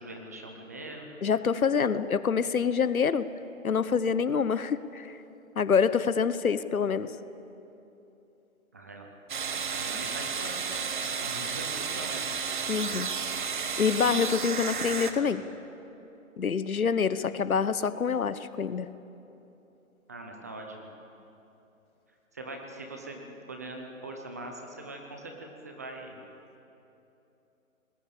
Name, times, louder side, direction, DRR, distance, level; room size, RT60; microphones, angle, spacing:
voice 1, 0.0-1.1 8.7-12.3 20.1-20.9 22.3-26.2, right 2 dB, 10° right, 2 dB, 0.8 m, -42 dB
voice 2, 1.2-3.3 3.6-5.2 5.6-7.1 12.7-13.1 13.8-15.4 16.4-18.9, left 6 dB, 85° left, 15 dB, 1.1 m, -26 dB
sound 1, 9.3-15.1, right 6 dB, 35° right, 1.3 m, -32 dB
21.5 x 20.0 x 8.4 m, 3.0 s
hypercardioid pair, 165°, 41 cm